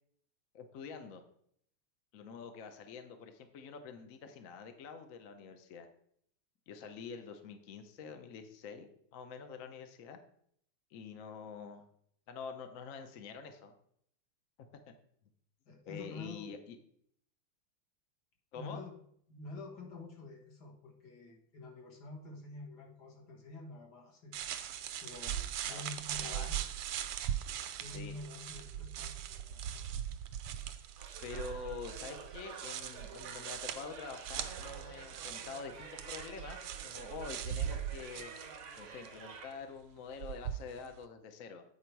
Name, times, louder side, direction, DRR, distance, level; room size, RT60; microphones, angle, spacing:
voice 1, 0.5-1.2 2.1-5.9 6.7-10.2 10.9-11.8 12.3-13.7 15.9-16.8 18.5-18.8 25.7-25.8 26.2-26.5 27.9-28.1 31.2-38.3 38.8-41.6, left 5 dB, 75° left, 7 dB, 0.7 m, -46 dB
voice 2, 15.7-16.5 18.5-18.9 19.3-24.3 25.0-26.6 27.8-29.8, left 2 dB, 50° left, 0 dB, 2.0 m, -48 dB
sound 1, 24.3-39.1 40.2-40.9, right 10 dB, 90° right, 1.6 m, -40 dB
sound 2, 31.0-39.7, right 5 dB, 65° right, 0.7 m, -50 dB
8.6 x 4.9 x 4.6 m, 0.67 s
omnidirectional pair, 2.4 m